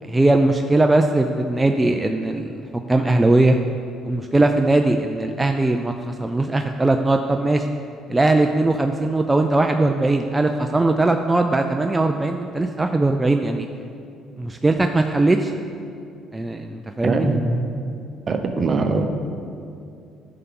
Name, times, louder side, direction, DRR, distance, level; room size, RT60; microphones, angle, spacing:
voice 1, 0.0-2.6 2.9-3.6 4.0-7.7 8.1-13.7 14.4-15.5 16.3-17.3, right 2 dB, 15° right, 5 dB, 0.4 m, -19 dB
voice 2, 17.0-17.4 18.3-19.1, right 3 dB, 45° right, 6 dB, 0.8 m, -21 dB
11.0 x 5.7 x 3.8 m, 2.5 s
supercardioid pair, 65°, 0 cm